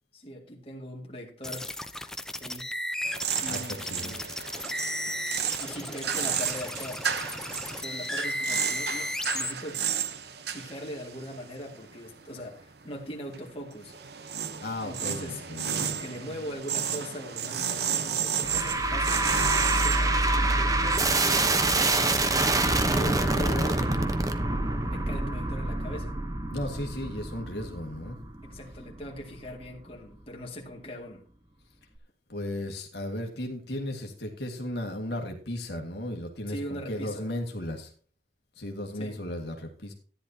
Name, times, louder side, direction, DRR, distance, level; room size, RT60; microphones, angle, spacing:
voice 1, 0.1-1.7 2.3-2.7 3.4-4.3 5.6-7.1 7.8-9.9 10.5-13.9 14.8-15.4 15.7-19.3 19.7-22.6 22.9-24.0 24.8-26.2 28.4-31.2 36.5-37.3 38.9-39.2, equal, 30° left, 2.2 m, -40 dB
sound 1, 1.4-9.5, left 1 dB, 5° left, 0.6 m, -34 dB
sound 2, 3.0-12.6 12.9-21.3, right 8 dB, 60° right, 0.9 m, -33 dB
voice 2, 3.4-4.2 14.6-15.9 25.2-25.5 26.5-28.2 32.3-37.9 38.6-39.9, left 1 dB, 65° left, 1.9 m, -35 dB
sound 3, 18.4-29.7, right 2 dB, 20° right, 0.9 m, -26 dB
14.0 x 10.5 x 2.8 m
head